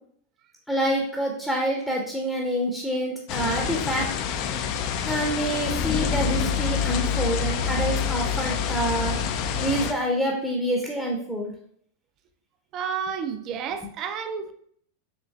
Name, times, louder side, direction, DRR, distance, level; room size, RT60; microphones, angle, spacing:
voice 1, 0.7-4.1 5.0-9.2 9.6-11.5, right 1 dB, ahead, 0 dB, 0.7 m, -27 dB
sound 1, 3.3-9.9, left 7 dB, 40° left, 0.3 m, -27 dB
voice 2, 12.7-14.5, right 7 dB, 35° right, 8 dB, 0.4 m, -31 dB
5.1 x 3.1 x 2.3 m, 0.65 s
figure-of-eight pair, 90°, 0 cm